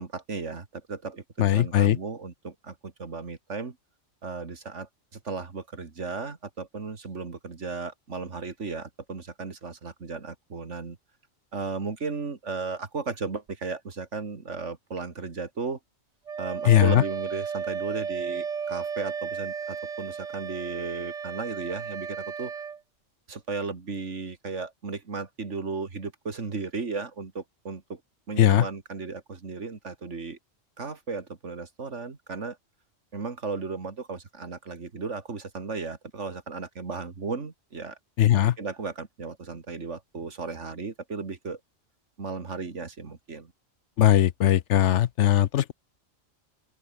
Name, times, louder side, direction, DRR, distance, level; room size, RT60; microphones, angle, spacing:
voice 1, 0.0-3.8 4.2-11.0 11.5-15.8 16.4-22.5 23.3-28.0 28.3-30.4 30.8-32.6 33.1-38.0 38.4-41.6 42.2-43.5, right 4 dB, 65° right, 2.5 m, -35 dB
voice 2, 1.4-2.0 16.7-17.0 28.4-28.6 38.2-38.5 44.0-45.7, left 12 dB, 70° left, 0.9 m, -19 dB
Wind instrument woodwind instrument, 16.3-22.8, right 6 dB, 35° right, 0.7 m, -34 dB
open air
omnidirectional pair, 1.3 m